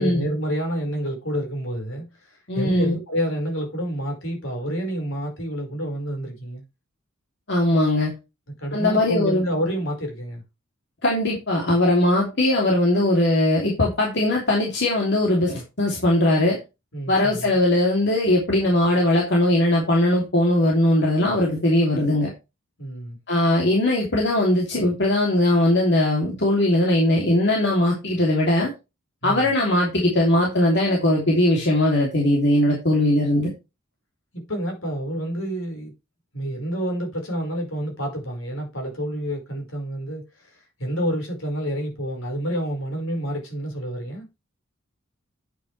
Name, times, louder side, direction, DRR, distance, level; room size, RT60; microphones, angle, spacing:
voice 1, 0.0-6.6 8.6-10.4 16.9-17.6 22.8-23.2 29.2-29.5 34.3-35.9 36.3-40.2 40.8-44.3, equal, 70° left, 5.2 m, -28 dB
voice 2, 2.5-3.0 7.5-8.1 8.7-9.4 11.0-16.6 17.1-22.3 23.3-28.7 29.2-33.5, left 1 dB, 55° left, 3.0 m, -20 dB
9.5 x 8.6 x 3.3 m
head